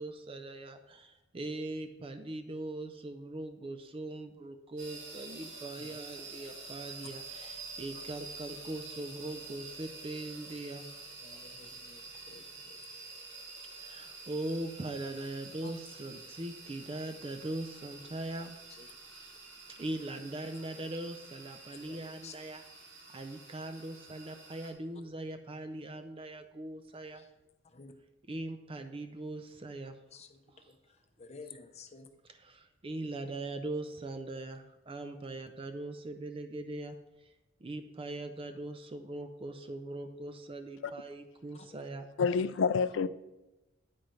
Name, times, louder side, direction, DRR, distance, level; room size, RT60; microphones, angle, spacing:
voice 1, 0.0-10.9 13.8-18.6 19.1-19.3 19.8-22.6 23.1-27.2 28.3-30.0 30.5-30.7 32.3-36.9 37.6-42.1, right 2 dB, 30° right, 0.4 m, -41 dB
sound 1, 4.8-24.7, right 3 dB, 85° right, 2.5 m, -48 dB
voice 2, 11.2-12.8 15.6-15.7 18.8-18.9 21.7-22.3 27.2-27.3 27.7-27.9 30.1-30.8 31.2-32.1 41.6-41.7, left 4 dB, 35° left, 0.7 m, -52 dB
voice 3, 42.2-43.1, left 5 dB, 70° left, 0.4 m, -28 dB
9.2 x 8.5 x 3.2 m
head